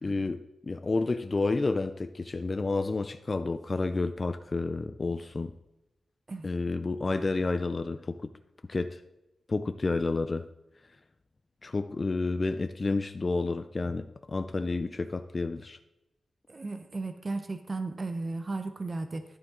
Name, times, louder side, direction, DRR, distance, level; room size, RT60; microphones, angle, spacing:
voice 1, 0.0-5.5 6.4-8.3 8.7-9.0 9.5-10.4 11.6-15.8, left 3 dB, 30° left, 9 dB, 0.4 m, -30 dB
voice 2, 16.5-19.2, right 3 dB, 35° right, 7 dB, 0.7 m, -35 dB
11.0 x 7.7 x 3.7 m, 0.91 s
wide cardioid pair, 135°, 0 cm